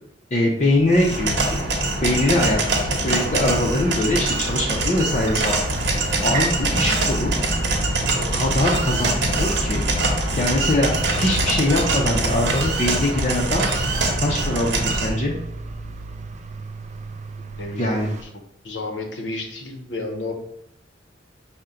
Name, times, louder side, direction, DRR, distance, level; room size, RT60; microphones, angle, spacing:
voice 1, 0.3-1.5 2.0-5.6 6.2-7.3 8.1-9.8 10.4-10.9 11.2-13.7 14.2-15.3 17.8-18.1, left 1 dB, 40° left, -2 dB, 0.5 m, -22 dB
sound 1, 0.6-18.2, right 4 dB, 40° right, 0.3 m, -36 dB
sound 2, 0.9-15.1, right 2 dB, 85° right, 0.9 m, -23 dB
Bass guitar, 6.6-16.5, equal, 10° right, 0.8 m, -34 dB
voice 2, 17.6-18.2 18.6-20.3, left 2 dB, 85° left, 3 dB, 0.8 m, -32 dB
5.6 x 2.1 x 3.7 m, 0.76 s
head